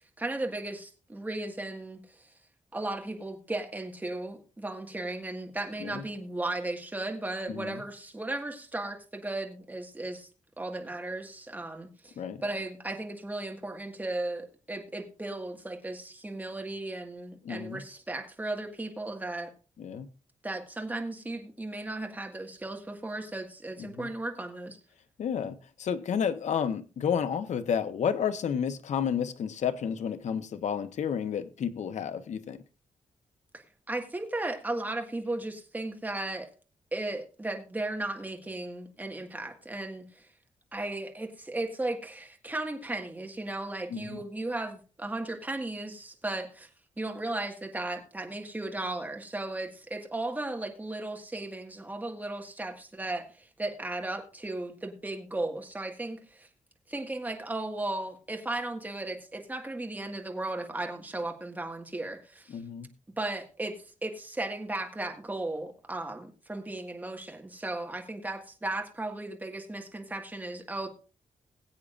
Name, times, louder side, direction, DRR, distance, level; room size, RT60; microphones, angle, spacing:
voice 1, 0.2-2.3 2.7-10.3 10.6-19.5 20.4-24.8 33.5-36.5 36.9-40.3 40.7-46.7 47.0-56.5 56.9-62.6 63.2-70.9, right 2 dB, 15° right, 1.7 m, -36 dB
voice 2, 7.5-7.8 12.2-12.4 17.4-17.8 19.8-20.1 23.8-24.1 25.2-32.6 43.9-44.2 62.5-62.9, left 7 dB, 70° left, 1.0 m, -31 dB
21.0 x 8.4 x 2.5 m
wide cardioid pair, 145°, 12 cm